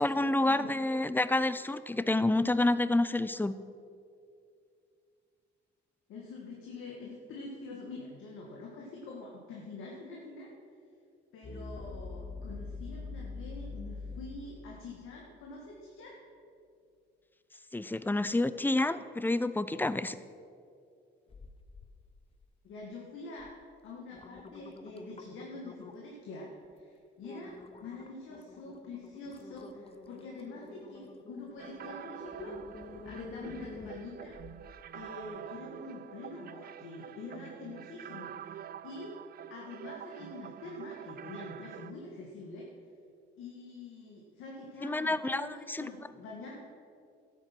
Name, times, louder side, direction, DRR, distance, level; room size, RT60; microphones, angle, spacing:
voice 1, 0.0-3.6 17.7-20.2 44.8-45.9, left 2 dB, 10° left, 14 dB, 0.5 m, -29 dB
voice 2, 6.1-10.5 11.3-16.2 22.6-23.5 23.8-34.4 34.9-38.6 38.8-39.2 39.5-42.7 43.4-46.6, left 3 dB, 85° left, -3 dB, 1.8 m, -45 dB
sound 1, 11.4-15.5, left 3 dB, 55° left, 1.5 m, -42 dB
sound 2, 21.3-21.9 22.3-22.8 23.4-23.5 23.9-26.2 26.6-26.8 27.2-34.7 35.2-35.3, left 3 dB, 30° left, 0.9 m, -49 dB
sound 3, 31.6-41.9, right 10 dB, 50° right, 0.4 m, -46 dB
12.5 x 9.1 x 6.1 m, 2.4 s
cardioid pair, 90°, 20 cm